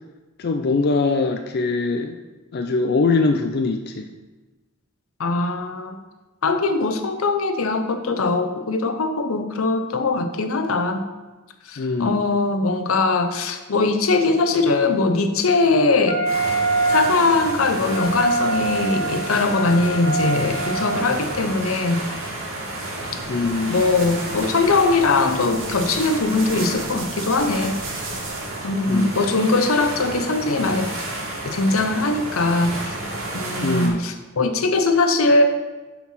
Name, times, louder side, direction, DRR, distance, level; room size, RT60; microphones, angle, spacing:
voice 1, 0.4-2.1 2.5-4.1 11.8-12.3 23.3-23.9 28.9-29.1 33.6-34.0, left 3 dB, 50° left, 5 dB, 0.4 m, -22 dB
voice 2, 5.2-6.0 6.4-11.1 11.7-16.2 16.9-22.0 23.7-28.2 28.6-30.9 31.4-33.0 33.3-35.4, left 3 dB, 80° left, 7 dB, 0.8 m, -21 dB
Wind instrument woodwind instrument, 16.1-21.3, right 3 dB, 25° right, 2.5 m, -25 dB
sound 1, 16.2-33.9, right 1 dB, 85° right, 2.0 m, -31 dB
sound 2, 23.2-28.6, right 4 dB, 65° right, 1.4 m, -37 dB
7.3 x 4.6 x 5.7 m, 1.2 s
head